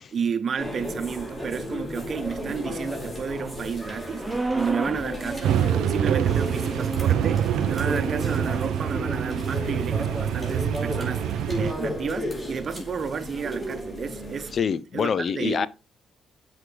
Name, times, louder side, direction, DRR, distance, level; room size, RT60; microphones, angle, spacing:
voice 1, 0.1-5.6 5.9-14.6 14.9-15.7, right 6 dB, 50° right, 0.8 m, -31 dB
sound 1, 0.6-14.6, equal, 20° left, 4.2 m, -34 dB
sound 2, 4.2-5.1 6.0-9.7, right 2 dB, 10° right, 1.1 m, -33 dB
sound 3, 5.4-11.7, right 10 dB, 85° right, 0.4 m, -26 dB
voice 2, 14.5-15.7, left 7 dB, 50° left, 0.4 m, -25 dB
7.7 x 4.7 x 3.4 m
cardioid pair, 90°, 0 cm